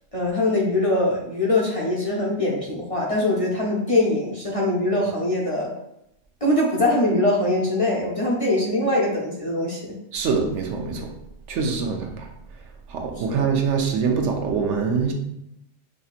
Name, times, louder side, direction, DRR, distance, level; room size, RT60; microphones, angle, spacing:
voice 1, 0.1-5.7 6.4-10.0 13.3-13.5, left 1 dB, 35° left, 0.6 m, -22 dB
voice 2, 10.1-11.1 11.5-12.6 12.9-15.1, right 5 dB, 80° right, 0.9 m, -24 dB
5.1 x 2.7 x 2.4 m
omnidirectional pair, 1.2 m